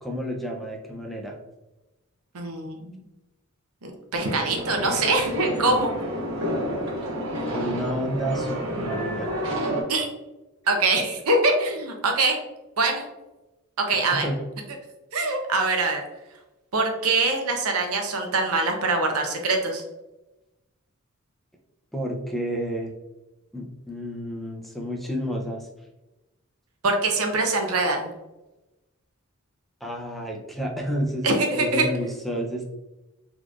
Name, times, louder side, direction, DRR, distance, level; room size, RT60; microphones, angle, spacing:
voice 1, 0.0-1.4 7.5-9.3 14.1-14.4 21.9-22.9 23.5-25.7 29.8-31.3 31.6-32.6, equal, ahead, 0 dB, 0.5 m, -30 dB
voice 2, 2.3-3.0 3.8-5.9 9.9-10.1 10.7-12.4 12.8-13.1 13.8-14.3 15.1-16.0 16.7-19.8 26.8-28.1 31.2-31.9, right 3 dB, 80° right, 3 dB, 0.7 m, -23 dB
sound 1, 4.2-9.8, equal, 65° right, 1.3 m, -29 dB
4.0 x 3.0 x 2.4 m, 1.0 s
head